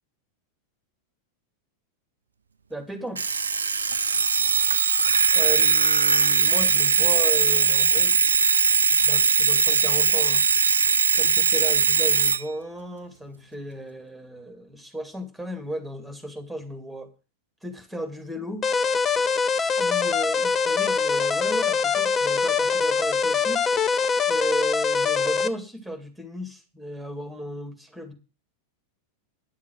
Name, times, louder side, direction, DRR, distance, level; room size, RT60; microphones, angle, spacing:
voice 1, 2.7-3.2 5.3-8.2 8.9-10.5 11.1-17.1 17.6-18.7 19.8-23.6 24.2-28.1, equal, ahead, 8 dB, 2.5 m, -35 dB
Alarm, 3.2-12.4, right 5 dB, 75° right, 0.5 m, -20 dB
sound 1, 18.6-25.5, left 5 dB, 25° left, 0.8 m, -23 dB
10.5 x 7.4 x 6.2 m, 0.32 s
figure-of-eight pair, 90°, 0 cm